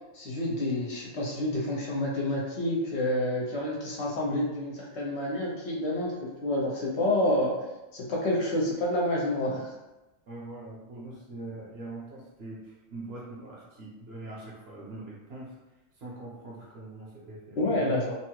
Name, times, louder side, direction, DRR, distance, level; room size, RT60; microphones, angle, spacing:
voice 1, 0.1-7.5 7.9-9.7 17.6-18.1, left 1 dB, 60° left, -3 dB, 0.8 m, -28 dB
voice 2, 10.3-15.6 15.9-17.9, right 2 dB, 55° right, -5 dB, 0.9 m, -42 dB
2.8 x 2.3 x 3.0 m, 1.0 s
omnidirectional pair, 1.4 m